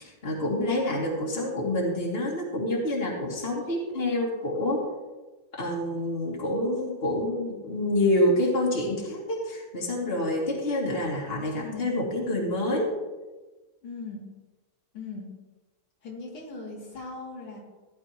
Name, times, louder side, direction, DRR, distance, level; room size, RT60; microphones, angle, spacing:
voice 1, 0.2-4.8 5.6-12.9, left 1 dB, 25° left, -3 dB, 2.8 m, -27 dB
voice 2, 11.5-11.9 13.8-14.2 14.9-15.3 16.0-17.6, left 3 dB, 80° left, -4 dB, 3.6 m, -39 dB
16.0 x 12.0 x 3.0 m, 1.2 s
omnidirectional pair, 2.3 m